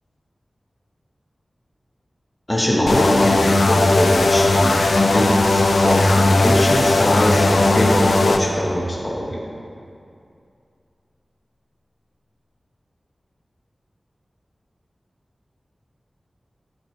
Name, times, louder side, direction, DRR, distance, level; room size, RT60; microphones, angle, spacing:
voice 1, 2.5-9.4, equal, 20° left, -3 dB, 1.3 m, -22 dB
sound 1, 2.9-8.4, left 2 dB, 90° left, 0.5 m, -17 dB
10.0 x 8.3 x 3.3 m, 2.5 s
wide cardioid pair, 75°, 0 cm